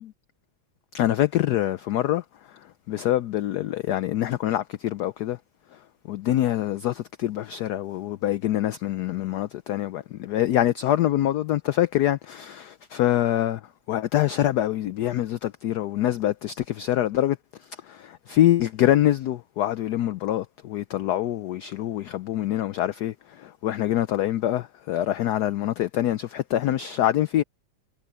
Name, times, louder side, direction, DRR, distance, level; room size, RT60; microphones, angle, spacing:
voice 1, 0.9-2.2 2.9-5.4 6.1-13.6 13.9-17.4 17.9-23.1 23.4-27.4, left 13 dB, 75° left, 0.9 m, -25 dB
omnidirectional pair, 2.2 m